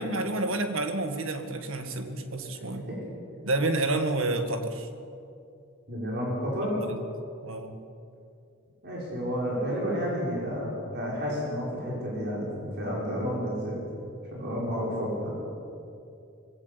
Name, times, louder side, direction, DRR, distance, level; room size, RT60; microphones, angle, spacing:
voice 1, 0.0-2.9 3.4-4.9 6.8-7.0 7.4-7.8, right 2 dB, 75° right, 7 dB, 1.8 m, -29 dB
voice 2, 2.5-3.0 5.9-6.8 8.8-13.8 14.3-15.3, equal, 55° right, -5 dB, 5.7 m, -31 dB
20.5 x 16.0 x 8.2 m, 2.5 s
head